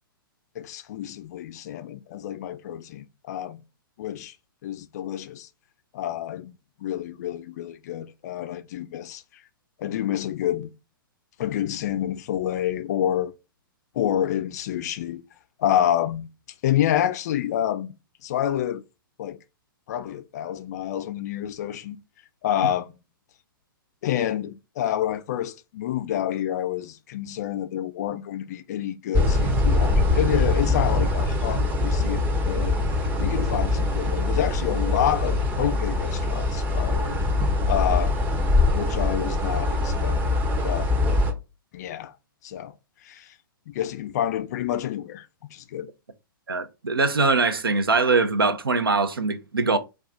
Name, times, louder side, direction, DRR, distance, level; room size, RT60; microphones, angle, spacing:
voice 1, 0.6-3.6 4.0-4.3 4.6-5.5 5.9-9.2 9.8-10.7 11.4-13.3 13.9-15.2 15.6-16.3 16.6-17.9 18.2-18.8 19.2-19.4 19.9-22.0 22.4-23.0 24.0-32.8 33.2-37.2 37.6-38.1 38.7-40.2 40.6-40.9 41.7-42.1 42.4-42.7 43.0-43.3 43.7-45.9, left 11 dB, 50° left, 0.4 m, -28 dB
sound 1, 29.1-41.3, left 2 dB, 15° right, 0.6 m, -23 dB
voice 2, 46.5-49.8, right 3 dB, 85° right, 0.5 m, -22 dB
2.3 x 2.3 x 3.7 m
figure-of-eight pair, 115°, 12 cm